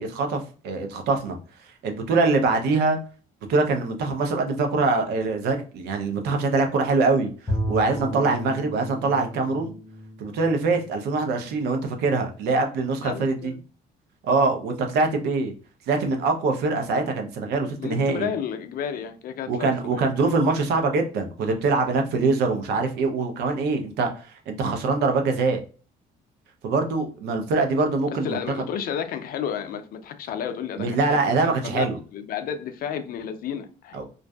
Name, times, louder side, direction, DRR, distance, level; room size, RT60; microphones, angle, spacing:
voice 1, 0.0-1.4 1.8-3.0 3.5-7.3 7.7-9.7 10.2-13.5 14.2-15.5 15.9-18.3 19.5-25.6 26.6-28.6 30.8-32.0 33.9-34.0, right 3 dB, 75° right, 0.6 m, -23 dB
Bowed string instrument, 7.5-11.7, equal, 25° left, 0.7 m, -33 dB
voice 2, 13.0-13.6 17.8-20.0 28.1-31.2 31.6-31.9 32.1-34.0, left 8 dB, 60° left, 0.4 m, -32 dB
2.5 x 2.3 x 2.2 m
cardioid pair, 110°, 17 cm